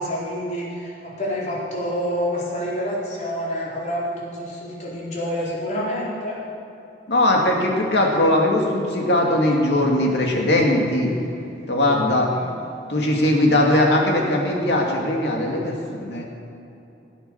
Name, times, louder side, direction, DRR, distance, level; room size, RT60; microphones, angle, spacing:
voice 1, 0.0-6.4 12.2-12.5, equal, 45° left, -6 dB, 4.4 m, -28 dB
voice 2, 7.1-11.1 11.7-12.3 12.9-16.3, left 1 dB, 70° left, -1 dB, 2.6 m, -20 dB
17.0 x 9.2 x 7.3 m, 2.8 s
head